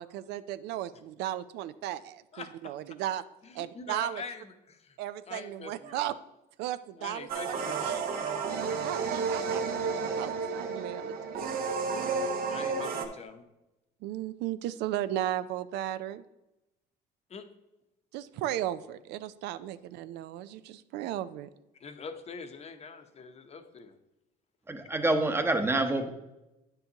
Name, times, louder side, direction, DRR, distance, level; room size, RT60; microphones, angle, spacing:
voice 1, 0.0-3.2 3.5-4.2 5.0-6.1 6.6-7.5 7.8-8.3 8.8-11.5 14.0-16.2 18.1-21.5, right 12 dB, 85° right, 14 dB, 0.4 m, -35 dB
voice 2, 2.3-2.7 3.4-5.0 5.3-6.0 7.0-8.0 12.5-13.4 17.3-17.4 21.8-23.9 24.9-25.0, left 5 dB, 40° left, 8 dB, 0.8 m, -44 dB
sound 1, 7.3-13.1, right 5 dB, 60° right, 0.9 m, -31 dB
voice 3, 24.7-26.1, right 2 dB, 15° right, 6 dB, 0.8 m, -27 dB
9.1 x 6.7 x 2.9 m, 0.95 s
cardioid pair, 110°, 17 cm